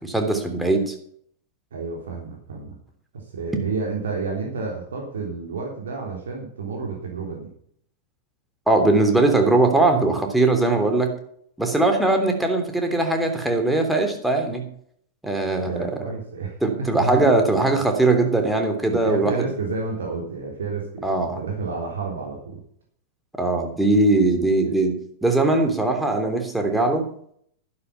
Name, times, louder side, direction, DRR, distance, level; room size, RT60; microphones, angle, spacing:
voice 1, 0.0-0.9 8.7-11.1 11.6-14.6 15.2-15.9 16.6-19.4 21.0-21.4 23.4-27.0, right 2 dB, 5° right, 3 dB, 3.3 m, -20 dB
voice 2, 1.7-2.7 3.1-7.5 15.6-17.2 18.8-22.6, right 4 dB, 65° right, -1 dB, 3.4 m, -30 dB
11.5 x 11.5 x 5.8 m, 0.63 s
figure-of-eight pair, 90°, 0 cm